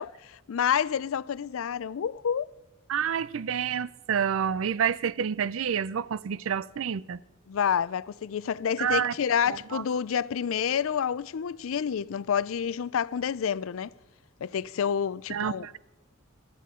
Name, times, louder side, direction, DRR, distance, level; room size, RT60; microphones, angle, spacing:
voice 1, 0.0-2.5 7.5-13.9 14.4-15.7, left 7 dB, 75° left, 0.4 m, -28 dB
voice 2, 2.9-7.2 8.8-9.1 9.4-9.8 15.3-15.8, right 7 dB, 75° right, 0.4 m, -28 dB
17.5 x 13.0 x 3.7 m
head